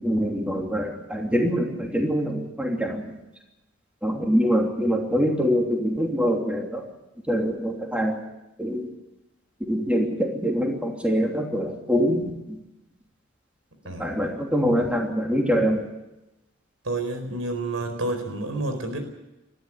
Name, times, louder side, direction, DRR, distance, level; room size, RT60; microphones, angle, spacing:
voice 1, 0.0-3.1 4.0-6.8 7.3-8.2 8.6-8.9 9.7-12.6 14.0-15.9, equal, 5° right, 1 dB, 3.0 m, -24 dB
voice 2, 13.8-14.2 16.8-19.0, right 2 dB, 85° right, 7 dB, 4.5 m, -29 dB
20.0 x 14.0 x 10.0 m, 0.96 s
head